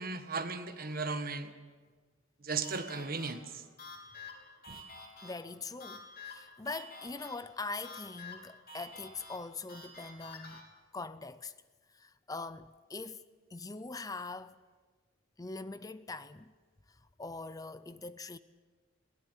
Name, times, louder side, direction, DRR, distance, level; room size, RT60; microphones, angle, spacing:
voice 1, 0.0-1.5 2.4-3.6 4.7-4.8, right 4 dB, 45° right, 1.4 m, -36 dB
sound 1, 2.6-10.6, left 2 dB, 50° left, 3.6 m, -49 dB
voice 2, 5.2-11.5 11.9-13.2 13.5-14.6 15.4-16.5 17.2-18.4, left 3 dB, 20° left, 0.5 m, -42 dB
22.0 x 16.5 x 8.4 m
head